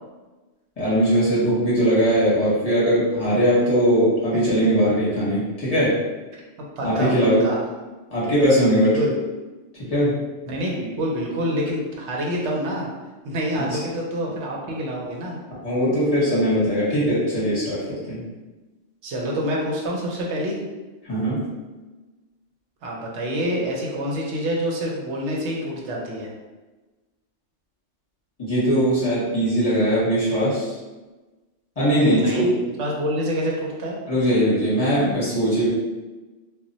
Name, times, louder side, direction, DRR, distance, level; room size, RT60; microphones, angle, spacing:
voice 1, 0.8-6.0 6.8-7.4 8.1-9.0 9.9-10.2 13.6-13.7 15.6-18.2 21.0-21.4 28.4-30.7 31.8-32.6 34.1-35.7, equal, 35° left, -10 dB, 1.0 m, -20 dB
voice 2, 6.8-7.1 7.4-7.6 8.7-9.1 10.5-12.9 13.2-15.4 19.0-20.6 22.8-26.3 32.0-34.0, equal, 75° right, -2 dB, 0.9 m, -27 dB
2.2 x 2.1 x 3.8 m, 1.2 s
omnidirectional pair, 1.2 m